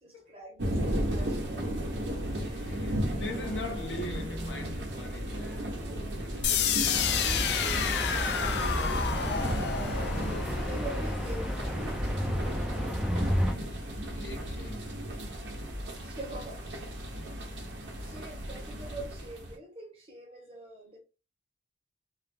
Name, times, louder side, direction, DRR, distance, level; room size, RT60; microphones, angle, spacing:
voice 1, 0.0-1.9 7.1-9.0 10.7-11.7 15.9-17.1 18.0-21.0, right 1 dB, 35° right, 0.8 m, -44 dB
sound 1, 0.6-19.6, equal, 80° right, 0.7 m, -35 dB
voice 2, 2.3-7.3 8.4-9.8 14.1-15.2 18.0-18.2, left 1 dB, 90° left, 0.7 m, -42 dB
sound 2, 6.4-12.4, left 7 dB, 70° left, 0.4 m, -31 dB
sound 3, 6.9-13.5, equal, 5° right, 0.3 m, -32 dB
2.3 x 2.0 x 3.2 m
head